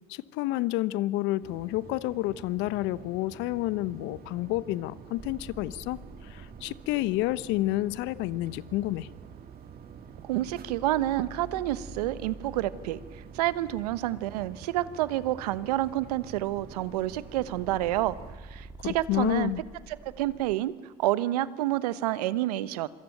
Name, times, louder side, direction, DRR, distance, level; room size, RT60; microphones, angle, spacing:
voice 1, 0.1-9.1 18.8-19.6, left 17 dB, 70° left, 19 dB, 1.0 m, -30 dB
sound 1, 1.4-18.4, right 8 dB, 50° right, 2.2 m, -48 dB
sound 2, 5.2-20.5, right 2 dB, 25° right, 2.8 m, -49 dB
voice 2, 10.2-13.0 13.3-18.1 18.5-19.5 20.0-20.7 21.0-22.9, right 15 dB, 85° right, 17 dB, 1.1 m, -28 dB
26.5 x 23.0 x 9.1 m, 1.5 s
hypercardioid pair, 70°, 20 cm